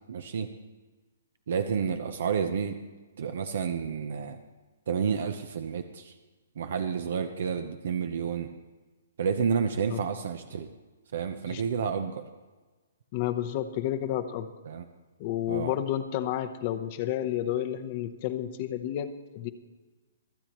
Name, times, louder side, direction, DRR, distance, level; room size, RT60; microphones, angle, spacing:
voice 1, 0.1-0.5 1.5-2.8 3.2-4.4 4.9-6.1 6.6-8.5 9.2-10.7 11.1-12.2 14.7-14.8 15.5-15.7, right 6 dB, 60° right, 8 dB, 0.8 m, -30 dB
voice 2, 13.1-14.5 15.2-19.5, left 11 dB, 35° left, 9 dB, 0.8 m, -31 dB
24.5 x 8.4 x 3.0 m, 1.3 s
hypercardioid pair, 160°, 0 cm